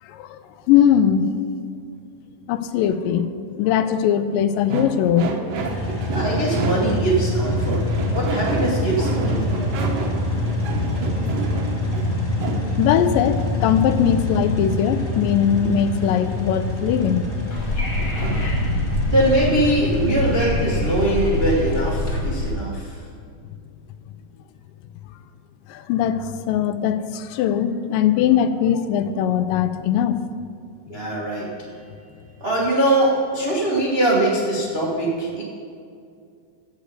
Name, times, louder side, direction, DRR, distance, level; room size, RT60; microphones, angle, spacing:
voice 1, 0.0-0.4 0.7-1.3 2.5-5.3 9.5-9.9 12.8-17.6 25.7-30.2, left 9 dB, 80° left, 11 dB, 2.2 m, -20 dB
sound 1, 4.7-7.1 7.6-12.7 17.9-18.5, right 3 dB, 70° right, 1.6 m, -29 dB
sound 2, 5.5-22.2, left 2 dB, 20° left, 2.6 m, -26 dB
voice 2, 6.1-7.8 8.1-9.6 19.1-22.9 30.9-31.5 32.4-35.4, right 1 dB, 85° right, -5 dB, 0.5 m, -22 dB
Wind / Subway metro underground, 17.5-22.5, left 1 dB, 45° left, 1.0 m, -25 dB
8.2 x 8.1 x 8.0 m, 2.3 s
omnidirectional pair, 4.0 m